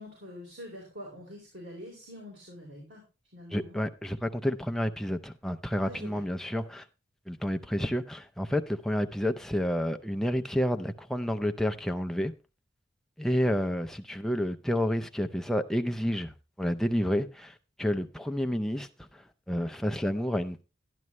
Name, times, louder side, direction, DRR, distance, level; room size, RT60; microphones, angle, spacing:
voice 1, 0.0-3.0 3.3-3.8 5.8-6.2 13.2-13.6, equal, 65° right, 3.8 m, -45 dB
voice 2, 3.5-6.9 7.3-12.3 13.2-20.6, equal, ahead, 0.5 m, -30 dB
12.0 x 10.5 x 3.1 m
head